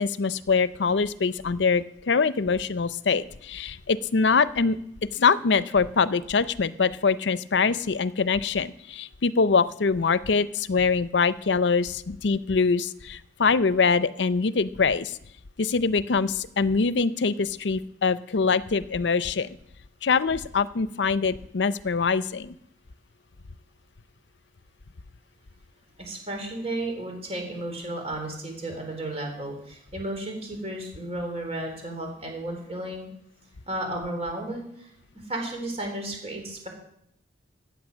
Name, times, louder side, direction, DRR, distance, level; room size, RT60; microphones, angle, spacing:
voice 1, 0.0-4.8 5.1-15.2 15.6-19.6 20.0-22.6, left 5 dB, 75° left, 15 dB, 0.6 m, -24 dB
voice 2, 26.0-33.1 33.7-34.9 35.3-36.7, right 1 dB, 35° right, 2 dB, 3.8 m, -33 dB
15.0 x 9.3 x 6.2 m, 0.75 s
head